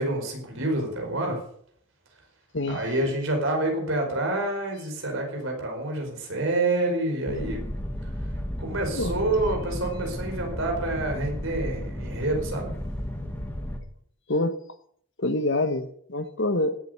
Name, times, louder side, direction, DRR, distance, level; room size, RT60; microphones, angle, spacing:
voice 1, 0.0-1.4 2.7-7.7 8.6-12.7, right 2 dB, 60° right, 2 dB, 4.9 m, -27 dB
sound 1, 7.3-13.8, equal, 10° left, 1.5 m, -33 dB
voice 2, 15.2-16.7, left 2 dB, 55° left, 10 dB, 1.3 m, -26 dB
17.0 x 8.0 x 6.7 m, 0.63 s
head